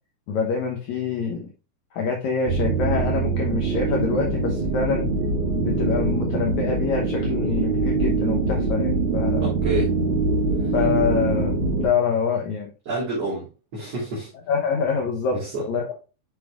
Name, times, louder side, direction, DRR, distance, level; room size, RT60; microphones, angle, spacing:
voice 1, 0.3-1.5 1.9-5.0 5.5-9.5 10.7-12.7 14.5-15.4 15.7-15.9, left 5 dB, 75° left, 1 dB, 1.8 m, -25 dB
sound 1, 2.4-11.8, right 4 dB, 80° right, 1.2 m, -23 dB
voice 2, 9.4-9.9 10.6-10.7 12.8-14.3 15.3-15.7, right 2 dB, 45° right, -8 dB, 3.4 m, -29 dB
9.4 x 5.4 x 2.4 m, 0.31 s
omnidirectional pair, 4.5 m